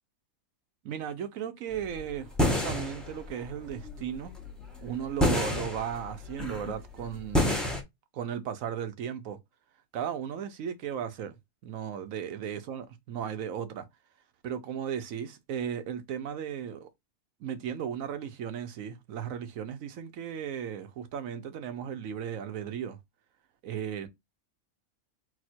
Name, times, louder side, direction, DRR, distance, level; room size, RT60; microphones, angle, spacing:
voice 1, 0.8-4.3 4.8-7.5 8.1-9.4 9.9-11.4 11.6-13.8 14.4-16.9 17.4-23.0 23.6-24.1, right 8 dB, 70° right, 1.1 m, -36 dB
sound 1, 1.7-7.8, left 1 dB, ahead, 0.7 m, -30 dB
4.2 x 2.2 x 4.3 m
omnidirectional pair, 1.5 m